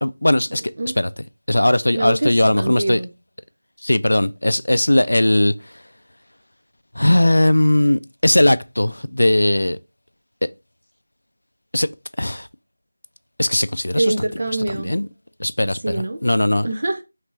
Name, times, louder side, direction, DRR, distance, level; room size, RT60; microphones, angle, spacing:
voice 1, 0.0-0.6 1.0-1.1 1.5-3.0 3.8-5.5 7.0-9.8 11.7-11.9 12.2-12.5 13.4-14.1 14.7-15.1 15.4-16.7, left 1 dB, 85° left, 0.3 m, -18 dB
voice 2, 1.9-3.1 13.9-15.0 15.6-16.2 16.6-17.0, right 2 dB, 30° right, 0.4 m, -24 dB
3.3 x 3.2 x 3.1 m
figure-of-eight pair, 180°, 0 cm